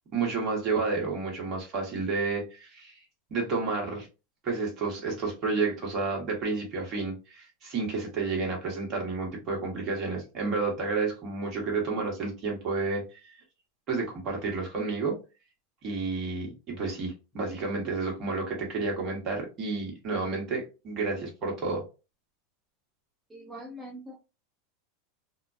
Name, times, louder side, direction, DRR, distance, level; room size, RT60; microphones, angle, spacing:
voice 1, 0.1-2.9 3.3-4.1 4.4-13.3 13.9-15.2 15.8-21.8, right 4 dB, 45° right, 0 dB, 1.3 m, -30 dB
voice 2, 23.3-24.1, equal, 10° right, -1 dB, 0.6 m, -42 dB
2.4 x 2.2 x 2.4 m, 0.29 s
hypercardioid pair, 110°, 0 cm